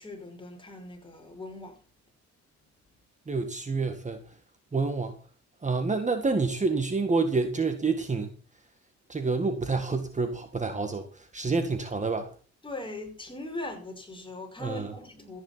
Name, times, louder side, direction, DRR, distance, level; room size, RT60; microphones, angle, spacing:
voice 1, 0.0-1.8 12.6-15.4, left 2 dB, 15° left, 5.4 m, -40 dB
voice 2, 3.3-4.2 4.7-5.2 5.6-8.3 9.1-12.3 14.6-14.9, right 4 dB, 25° right, 1.8 m, -28 dB
14.5 x 9.7 x 5.7 m
cardioid pair, 90°, 30 cm